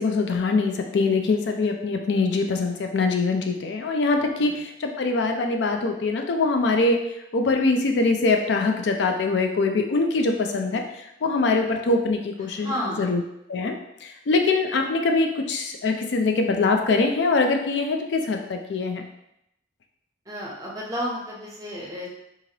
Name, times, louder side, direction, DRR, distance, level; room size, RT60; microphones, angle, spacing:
voice 1, 0.0-7.0 7.3-10.8 11.2-12.7 13.0-13.2 13.5-13.8 14.0-19.0, left 3 dB, 80° left, 4 dB, 0.4 m, -23 dB
voice 2, 12.4-13.2 20.3-22.1, equal, 20° right, -4 dB, 0.7 m, -32 dB
3.1 x 2.4 x 2.8 m, 0.82 s
head